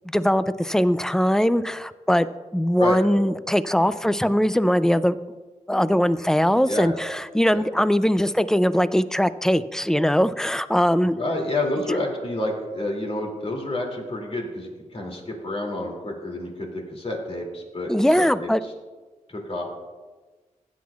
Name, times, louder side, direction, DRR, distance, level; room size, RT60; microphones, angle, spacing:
voice 1, 0.1-2.3 2.5-5.2 5.7-11.2 11.9-12.0 17.9-18.6, equal, 5° left, 14 dB, 0.4 m, -21 dB
voice 2, 11.1-18.5 19.3-19.6, left 2 dB, 45° left, 0 dB, 2.6 m, -29 dB
16.5 x 9.3 x 2.4 m, 1.3 s
wide cardioid pair, 85°, 13 cm